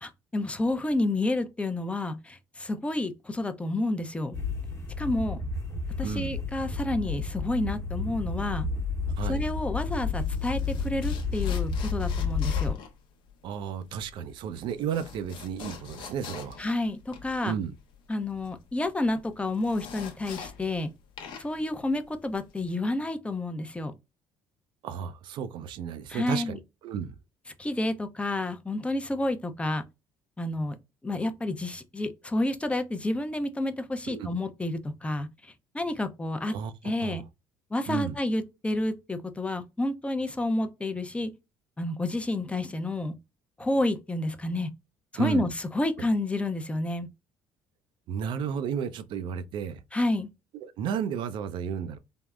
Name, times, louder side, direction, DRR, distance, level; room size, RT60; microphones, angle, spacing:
voice 1, 0.0-4.4 5.0-5.4 6.0-8.7 9.2-12.8 16.6-17.5 18.1-20.9 21.4-23.9 26.1-26.6 27.6-29.8 30.4-30.8 31.0-36.5 36.8-37.2 37.7-41.3 41.8-43.1 43.6-44.7 45.1-47.1 49.9-50.3, left 2 dB, 15° left, 0.4 m, -30 dB
sound 1, 4.3-12.7, left 4 dB, 30° left, 1.0 m, -31 dB
voice 2, 6.0-6.4 9.2-9.4 13.4-16.6 17.4-17.7 24.8-27.1 34.1-34.4 36.5-36.7 37.0-37.2 37.9-38.1 45.2-45.5 48.1-49.8 50.5-52.0, right 7 dB, 65° right, 0.4 m, -33 dB
sound 2, 9.8-20.9 21.1-22.7, left 6 dB, 70° left, 0.7 m, -45 dB
3.4 x 2.0 x 2.2 m
supercardioid pair, 85°, 9 cm